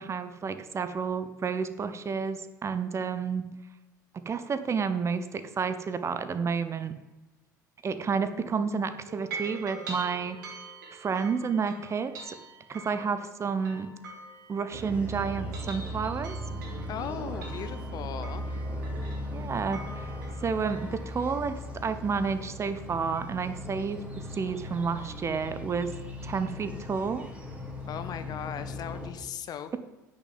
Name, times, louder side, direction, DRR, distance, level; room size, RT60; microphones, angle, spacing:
voice 1, 0.0-3.5 4.1-6.9 7.8-10.4 10.9-12.4 12.7-13.9 14.5-16.3 19.3-20.1 20.4-25.9 26.2-27.3, right 5 dB, 25° right, 11 dB, 0.9 m, -30 dB
sound 1, 9.1-15.0 15.4-21.1, right 3 dB, 70° right, 3.0 m, -44 dB
sound 2, 14.7-29.1, equal, 10° right, 3.3 m, -38 dB
voice 2, 16.9-18.4 27.9-29.8, left 9 dB, 40° left, 11 dB, 0.8 m, -38 dB
10.0 x 6.5 x 7.6 m, 1.1 s
figure-of-eight pair, 65°, 10 cm